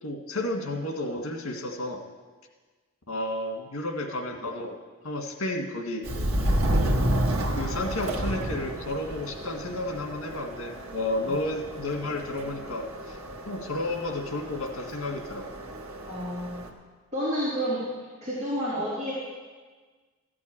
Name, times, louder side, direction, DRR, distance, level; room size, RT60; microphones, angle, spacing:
voice 1, 0.0-2.0 3.1-4.8 5.0-6.1 7.6-13.2 13.5-15.5, left 1 dB, 85° left, 3 dB, 1.9 m, -32 dB
Subway metro underground, 6.0-16.7, right 1 dB, 85° right, 1.4 m, -31 dB
voice 2, 16.1-16.6 17.1-17.8 18.2-19.1, equal, 35° right, -9 dB, 3.4 m, -30 dB
14.5 x 6.2 x 8.8 m, 1.4 s
head